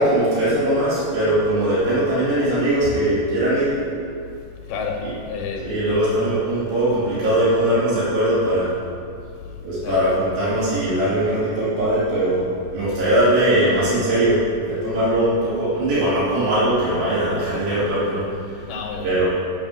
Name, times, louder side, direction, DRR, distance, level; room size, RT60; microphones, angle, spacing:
voice 1, 0.0-3.8 5.0-5.1 5.6-8.7 9.6-12.4 12.7-18.7 19.0-19.3, right 1 dB, 85° right, -11 dB, 4.7 m, -20 dB
voice 2, 4.6-5.7 9.4-10.0 18.7-19.2, left 5 dB, 75° left, 1 dB, 3.0 m, -30 dB
7.8 x 7.1 x 8.1 m, 2.4 s
omnidirectional pair, 4.8 m